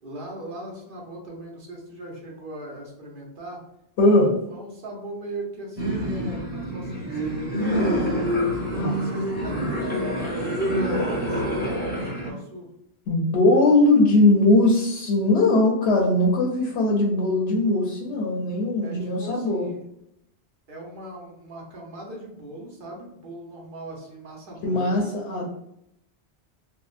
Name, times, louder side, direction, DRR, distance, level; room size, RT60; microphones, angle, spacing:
voice 1, 0.0-3.6 4.1-8.1 8.9-12.7 18.8-19.8 20.7-25.1, right 1 dB, 55° right, -2 dB, 0.9 m, -39 dB
voice 2, 4.0-4.3 8.7-9.0 13.1-19.7 24.6-25.5, left 2 dB, 75° left, -2 dB, 0.9 m, -20 dB
sound 1, 5.8-12.3, equal, 10° left, 0.5 m, -26 dB
3.5 x 2.0 x 2.4 m, 0.78 s
omnidirectional pair, 1.1 m